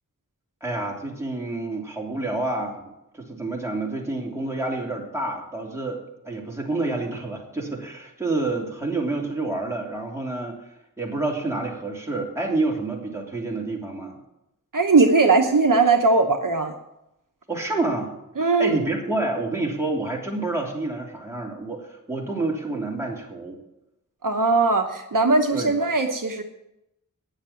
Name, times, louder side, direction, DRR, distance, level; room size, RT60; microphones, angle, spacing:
voice 1, 0.6-10.6 11.0-14.2 17.5-23.6 25.5-25.7, right 2 dB, 10° right, -2 dB, 3.0 m, -28 dB
voice 2, 14.7-16.7 18.4-18.8 24.2-26.4, right 3 dB, 65° right, 4 dB, 1.0 m, -19 dB
9.6 x 7.3 x 8.8 m, 0.87 s
wide cardioid pair, 45°, 34 cm